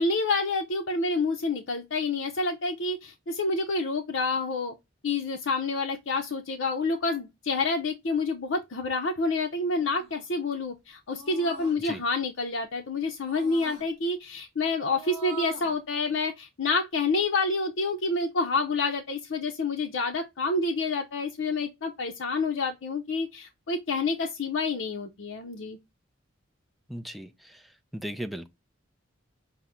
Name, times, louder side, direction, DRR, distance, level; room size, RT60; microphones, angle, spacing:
voice 1, 0.0-4.7 5.0-25.8, left 3 dB, 60° left, 0.6 m, -28 dB
sound 1, 9.7-10.2 11.1-11.8 13.2-13.8 14.8-15.8, right 3 dB, 30° left, 2.3 m, -43 dB
voice 2, 26.9-27.6 27.9-28.5, equal, ahead, 0.3 m, -37 dB
5.6 x 2.0 x 3.5 m
head